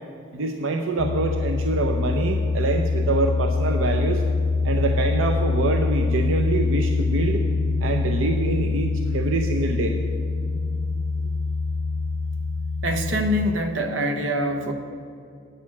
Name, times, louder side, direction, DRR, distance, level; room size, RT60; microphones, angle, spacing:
voice 1, 0.3-4.2 4.6-7.4 7.8-10.0, right 3 dB, 90° right, 4 dB, 0.6 m, -25 dB
sound 1, 1.0-13.5, left 3 dB, 70° left, 0.4 m, -24 dB
voice 2, 12.8-14.7, equal, 70° right, 6 dB, 0.9 m, -24 dB
8.3 x 6.7 x 8.4 m, 2.3 s
head